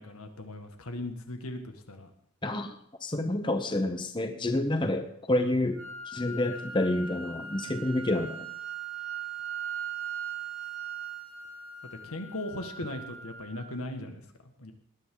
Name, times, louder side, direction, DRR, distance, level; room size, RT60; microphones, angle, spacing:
voice 1, 0.0-2.1 12.0-14.7, left 1 dB, 90° left, 5 dB, 1.8 m, -38 dB
voice 2, 2.4-2.7 3.0-5.8 6.1-8.5, left 1 dB, 20° left, 7 dB, 0.9 m, -28 dB
sound 1, 5.8-13.8, right 6 dB, 90° right, 1.9 m, -39 dB
19.0 x 10.5 x 3.9 m, 0.65 s
head